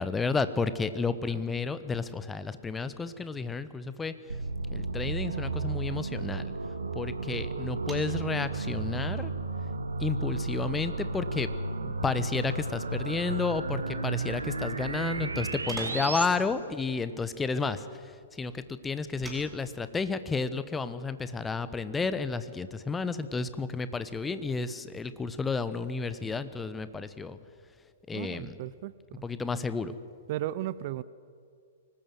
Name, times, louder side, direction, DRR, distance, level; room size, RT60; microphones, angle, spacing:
voice 1, 0.0-4.4 4.7-6.5 6.9-9.3 10.0-11.5 11.8-27.4 28.1-28.6 29.2-29.9, left 4 dB, 10° left, 13 dB, 1.1 m, -32 dB
sound 1, 4.3-16.3, right 3 dB, 75° right, 1.7 m, -33 dB
sound 2, 7.7-20.9, right 1 dB, 5° right, 4.2 m, -53 dB
voice 2, 28.1-29.2 30.3-31.0, right 14 dB, 45° right, 18 dB, 0.6 m, -35 dB
24.5 x 19.5 x 7.8 m, 2.2 s
figure-of-eight pair, 110°, 0 cm